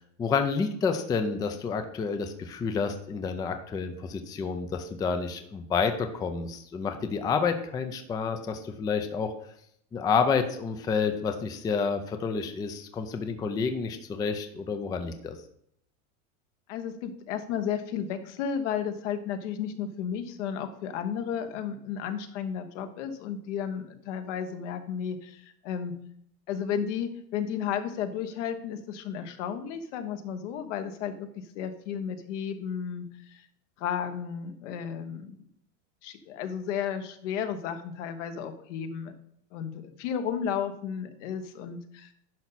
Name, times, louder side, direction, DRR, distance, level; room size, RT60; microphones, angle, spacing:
voice 1, 0.2-9.3 9.9-15.4, left 5 dB, 10° left, 8 dB, 0.4 m, -29 dB
voice 2, 16.7-25.9 26.5-31.3 31.5-33.4 33.8-35.4 36.0-39.1 39.5-42.1, left 8 dB, 70° left, 8 dB, 1.3 m, -33 dB
10.5 x 5.6 x 4.1 m, 0.70 s
supercardioid pair, 145°, 38 cm